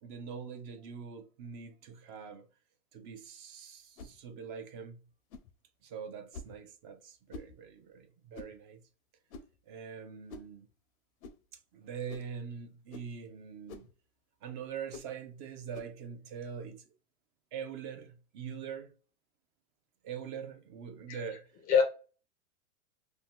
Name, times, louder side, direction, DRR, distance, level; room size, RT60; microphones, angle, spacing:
voice 1, 0.0-2.5 2.9-5.0 5.8-8.8 9.7-10.7 11.7-13.9 14.4-16.8 17.5-18.9 20.0-21.5, right 7 dB, 40° right, 0.4 m, -43 dB
sound 1, 4.0-4.2 5.3-5.5 6.3-6.6 7.3-7.5 8.3-8.6 9.3-9.6 10.3-10.5 11.2-11.4 12.1-12.3 12.9-13.1 13.7-13.9 14.9-15.1 15.7-15.9, left 3 dB, 85° left, 0.6 m, -47 dB
voice 2, 21.1-21.8, left 6 dB, 25° left, 0.4 m, -28 dB
2.7 x 2.0 x 3.4 m
supercardioid pair, 130°, 40 cm